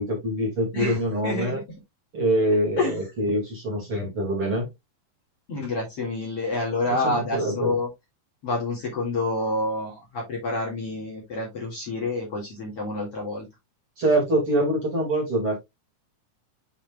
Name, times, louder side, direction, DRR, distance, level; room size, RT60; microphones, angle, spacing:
voice 1, 0.0-1.6 2.1-4.7 7.0-7.7 14.0-15.6, right 1 dB, 40° right, 2.7 m, -24 dB
voice 2, 0.7-1.6 2.8-3.1 5.5-7.9 8.4-13.5, left 2 dB, 45° left, 2.7 m, -28 dB
7.3 x 5.8 x 2.4 m
omnidirectional pair, 4.5 m